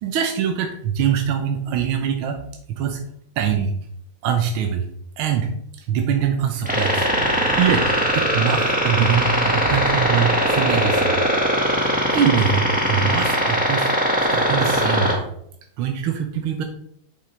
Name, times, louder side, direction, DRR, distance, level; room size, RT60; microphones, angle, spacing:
voice 1, 0.0-2.4 2.7-3.0 3.4-3.8 4.2-4.9 5.2-5.5 5.8-11.2 11.7-15.3 15.8-16.6, right 8 dB, 85° right, 5 dB, 1.6 m, -23 dB
sound 1, 6.7-15.2, equal, 5° right, 1.2 m, -20 dB
7.8 x 6.5 x 3.2 m, 0.69 s
omnidirectional pair, 2.2 m